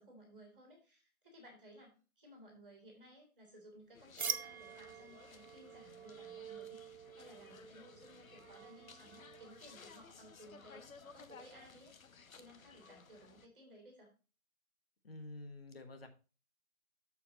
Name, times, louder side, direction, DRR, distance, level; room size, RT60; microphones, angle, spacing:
voice 1, 0.0-11.9 12.4-14.1, right 1 dB, 5° right, -18 dB, 1.0 m, -58 dB
sound 1, 3.9-13.5, left 5 dB, 75° left, 1.0 m, -58 dB
sound 2, 4.2-9.7, right 7 dB, 80° right, 0.9 m, -46 dB
voice 2, 15.0-16.1, left 2 dB, 45° left, 6 dB, 1.4 m, -49 dB
14.0 x 4.8 x 2.9 m, 0.34 s
hypercardioid pair, 175°, 42 cm